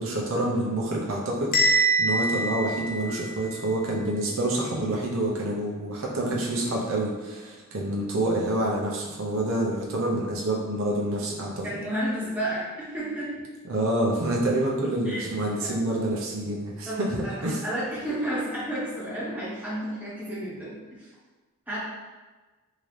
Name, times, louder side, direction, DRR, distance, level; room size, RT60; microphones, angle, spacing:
voice 1, 0.0-11.6 13.7-17.6, right 1 dB, 75° right, -3 dB, 0.8 m, -27 dB
Bell, 1.5-3.6, right 2 dB, 40° left, 0.6 m, -24 dB
voice 2, 11.6-13.5 15.0-15.3 15.6-15.9 16.9-21.1 21.7-21.8, right 1 dB, 10° right, -10 dB, 1.2 m, -32 dB
3.7 x 2.8 x 3.2 m, 1.3 s
head